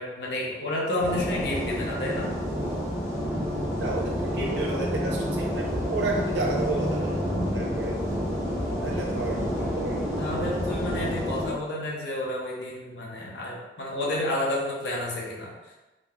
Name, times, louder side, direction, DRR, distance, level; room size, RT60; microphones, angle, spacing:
voice 1, 0.0-2.3 10.2-15.5, left 1 dB, 75° left, -4 dB, 0.9 m, -30 dB
sound 1, 1.0-11.5, equal, 15° right, 0.8 m, -29 dB
voice 2, 3.8-8.0 8.8-10.7, right 2 dB, 85° right, -2 dB, 0.6 m, -32 dB
3.8 x 2.2 x 3.6 m, 1.1 s
head